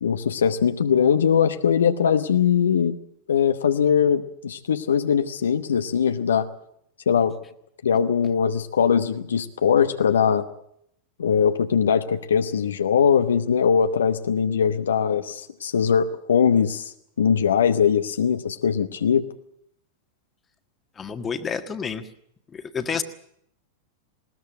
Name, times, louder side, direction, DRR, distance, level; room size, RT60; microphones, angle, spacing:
voice 1, 0.0-3.0 3.3-6.5 7.1-7.3 7.8-10.5 11.2-19.3, left 7 dB, 65° left, 8 dB, 0.9 m, -21 dB
voice 2, 21.0-22.1 22.5-23.0, left 6 dB, 20° left, 8 dB, 1.6 m, -29 dB
20.5 x 19.0 x 7.8 m, 0.71 s
figure-of-eight pair, 90°, 0 cm